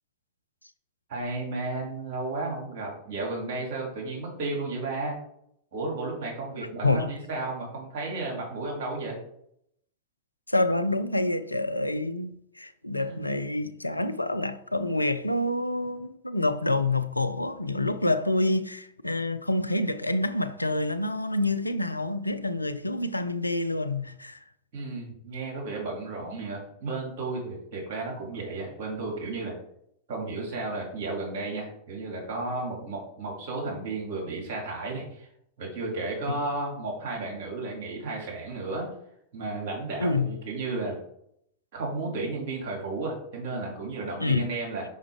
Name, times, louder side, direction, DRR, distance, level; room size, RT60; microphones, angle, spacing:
voice 1, 1.1-5.1 5.7-9.2 13.0-13.2 24.7-29.5 30.1-35.3 35.6-38.9 39.3-41.0 41.7-44.8, right 3 dB, 50° right, 2.5 m, -33 dB
voice 2, 10.5-24.4 36.3-36.4 40.0-40.4 44.2-44.5, left 2 dB, 85° left, 0.3 m, -27 dB
5.6 x 4.9 x 3.6 m
figure-of-eight pair, 90°, 0 cm